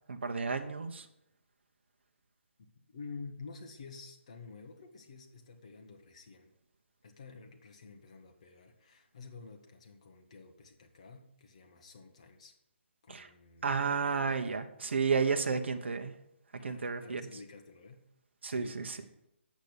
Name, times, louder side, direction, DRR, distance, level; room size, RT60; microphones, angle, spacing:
voice 1, 0.1-1.1 13.1-13.3 13.6-16.2 16.6-17.2 18.4-19.0, right 5 dB, 60° right, 6 dB, 0.9 m, -32 dB
voice 2, 2.6-6.5 7.0-12.6 13.0-13.8 16.6-18.0 18.5-19.0, left 4 dB, 30° left, 3 dB, 1.0 m, -50 dB
8.3 x 5.9 x 6.8 m, 0.81 s
hypercardioid pair, 180°, 7 cm